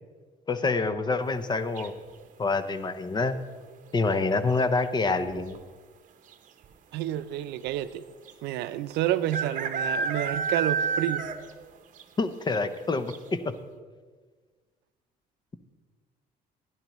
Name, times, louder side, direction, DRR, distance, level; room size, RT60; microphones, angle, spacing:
voice 1, 0.5-1.9 2.4-3.4 3.9-5.6 12.2-13.5, left 3 dB, 25° left, 11 dB, 0.7 m, -27 dB
sound 1, 1.8-2.2 4.0-4.4 4.7-4.8 5.0-5.6 6.3-6.4 6.6-6.7 8.3-8.4 9.3-11.6 12.0-12.1 12.5-12.6 13.1-13.2, right 5 dB, 50° right, 0.9 m, -30 dB
voice 2, 6.9-8.0 8.4-11.3, right 13 dB, 80° right, 13 dB, 0.5 m, -29 dB
15.5 x 10.5 x 3.1 m, 1.5 s
cardioid pair, 110°, 17 cm